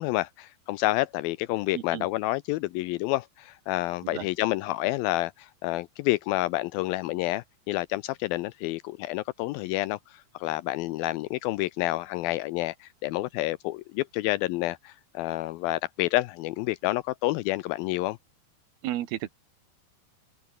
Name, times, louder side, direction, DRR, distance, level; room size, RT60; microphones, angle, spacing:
voice 1, 0.0-18.2, left 18 dB, 85° left, 2.1 m, -29 dB
voice 2, 1.7-2.1 4.0-4.3 18.8-19.3, right 13 dB, 70° right, 3.2 m, -33 dB
omnidirectional pair, 4.8 m